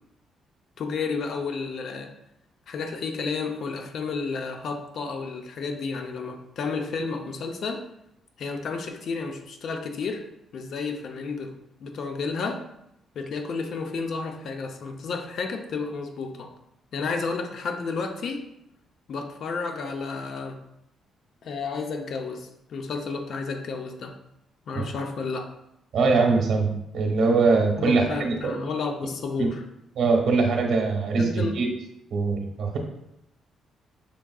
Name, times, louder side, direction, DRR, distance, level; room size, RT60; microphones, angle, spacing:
voice 1, 0.8-2.1 2.7-7.9 8.4-10.2 10.5-11.5 11.8-12.6 13.2-16.5 16.9-18.4 19.1-20.6 21.4-24.2 24.7-25.5 27.8-29.6 31.2-31.6, left 4 dB, 65° left, 4 dB, 0.6 m, -31 dB
voice 2, 25.9-28.6 29.4-29.5 30.0-31.7 32.1-32.8, right 4 dB, 70° right, 1 dB, 1.0 m, -22 dB
6.1 x 3.6 x 2.3 m, 0.83 s
cardioid pair, 90°, 0 cm